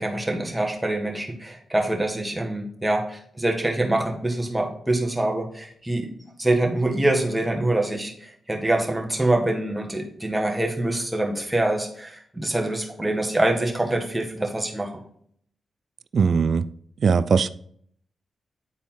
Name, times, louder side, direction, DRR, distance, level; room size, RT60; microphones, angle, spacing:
voice 1, 0.0-6.1 6.4-14.9, right 1 dB, 15° right, 1 dB, 1.8 m, -25 dB
voice 2, 16.1-16.7 17.0-17.5, right 5 dB, 65° right, 15 dB, 0.3 m, -19 dB
9.0 x 4.0 x 4.0 m, 0.63 s
supercardioid pair, 45°, 0 cm